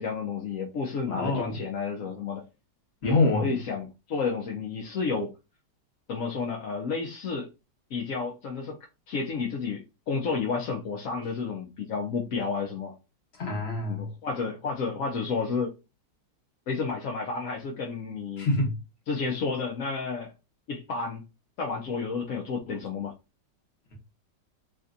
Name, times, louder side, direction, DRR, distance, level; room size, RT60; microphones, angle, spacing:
voice 1, 0.0-2.4 3.0-5.3 6.1-7.5 7.9-8.8 9.1-12.9 13.9-15.7 16.7-18.5 19.1-20.3 20.7-21.2 21.6-23.1, left 5 dB, 65° left, 0.8 m, -31 dB
voice 2, 1.1-1.6 3.0-3.5 13.3-14.1 18.4-18.8, left 2 dB, 40° left, 1.2 m, -27 dB
3.3 x 2.6 x 2.4 m
omnidirectional pair, 2.0 m